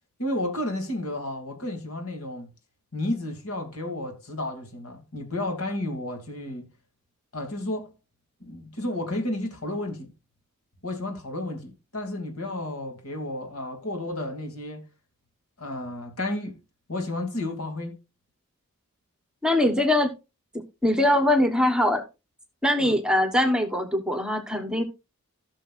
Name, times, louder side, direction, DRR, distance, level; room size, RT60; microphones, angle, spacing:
voice 1, 0.2-2.5 2.9-6.7 7.3-7.9 8.4-10.1 10.8-14.8 15.6-16.6 16.9-17.9 22.8-22.9, left 1 dB, 80° left, 2.7 m, -32 dB
voice 2, 19.4-20.1 20.8-22.1 22.6-24.8, left 1 dB, 5° right, 1.1 m, -22 dB
16.5 x 6.3 x 2.5 m
head